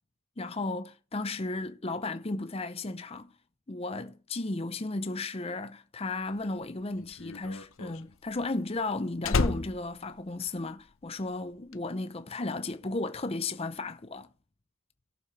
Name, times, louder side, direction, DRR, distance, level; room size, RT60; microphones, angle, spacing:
voice 1, 0.4-3.3 3.7-14.3, left 2 dB, 30° left, 0.7 m, -34 dB
Slam, 6.3-11.0 11.3-11.7, left 3 dB, 75° left, 0.8 m, -32 dB
18.0 x 7.0 x 3.3 m
head